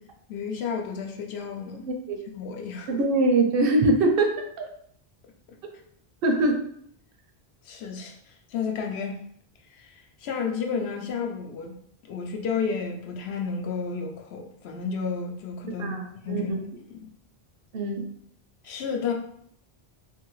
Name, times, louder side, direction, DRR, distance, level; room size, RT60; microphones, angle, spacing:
voice 1, 0.3-1.8 2.3-2.9 7.6-8.2 8.5-9.2 9.7-9.9 10.2-11.8 12.1-16.0 16.2-16.5 16.9-17.1 18.6-19.1, left 5 dB, 85° left, 2 dB, 0.8 m, -31 dB
voice 2, 1.8-2.2 2.9-4.7 6.2-6.6 15.8-16.6 17.7-18.1, right 2 dB, 70° right, 3 dB, 0.7 m, -23 dB
2.7 x 2.7 x 3.0 m, 0.66 s
omnidirectional pair, 1.0 m